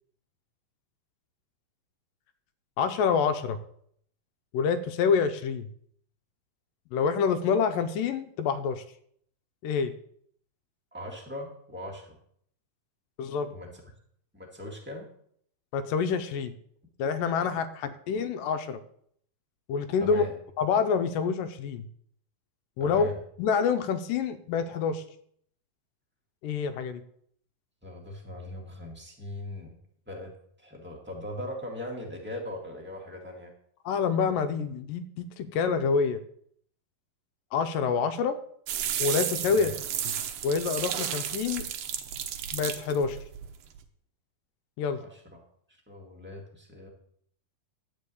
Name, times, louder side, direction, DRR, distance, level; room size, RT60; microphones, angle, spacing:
voice 1, 2.8-3.6 4.5-5.7 6.9-8.8 9.6-9.9 13.2-13.5 15.7-16.5 17.0-18.8 19.7-20.2 20.6-21.9 22.8-23.1 23.4-25.0 26.4-27.0 33.9-36.2 37.5-38.4 39.0-39.7 40.4-41.7 42.5-43.2 44.8-45.0, left 6 dB, 80° left, 9 dB, 2.3 m, -27 dB
voice 2, 10.9-12.2 13.5-13.7 14.3-15.1 20.0-20.3 22.8-23.2 27.8-29.7 30.1-30.3 30.6-33.5 39.5-39.7 45.0-45.2 45.9-46.9, left 1 dB, 10° right, -2 dB, 0.7 m, -39 dB
sound 1, 38.7-43.8, right 9 dB, 85° right, 1.4 m, -33 dB
12.0 x 4.7 x 8.3 m, 0.65 s
omnidirectional pair, 4.1 m